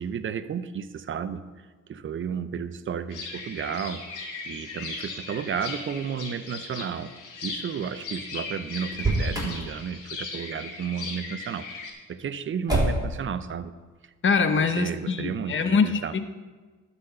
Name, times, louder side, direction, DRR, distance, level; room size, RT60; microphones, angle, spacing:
voice 1, 0.0-1.4 1.9-4.0 4.5-7.1 7.4-11.7 12.1-13.7 14.7-16.1, right 7 dB, 40° right, 13 dB, 0.6 m, -32 dB
sound 1, 3.1-11.9, left 4 dB, 85° left, 1.7 m, -38 dB
Motor vehicle (road), 8.9-9.6 12.7-13.2, right 2 dB, 15° right, 3.4 m, -25 dB
voice 2, 14.2-16.3, left 5 dB, 40° left, 9 dB, 0.9 m, -24 dB
12.0 x 4.2 x 6.8 m, 1.4 s
cardioid pair, 90°, 30 cm